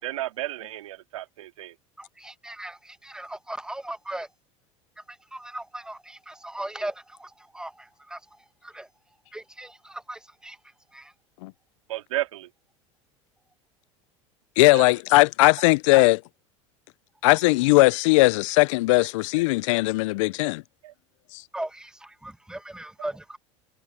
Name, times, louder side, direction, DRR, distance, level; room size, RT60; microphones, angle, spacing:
voice 1, 0.0-1.7 11.9-12.5 14.7-14.9 20.8-20.9, right 15 dB, 80° right, 2.9 m, -33 dB
voice 2, 2.0-4.3 5.1-8.2 8.6-8.9 9.3-10.6 10.9-11.1 21.5-23.4, right 1 dB, 5° right, 1.5 m, -38 dB
voice 3, 14.6-16.2 17.2-20.6 21.3-21.4, left 22 dB, 70° left, 0.6 m, -19 dB
hypercardioid pair, 90°, 17 cm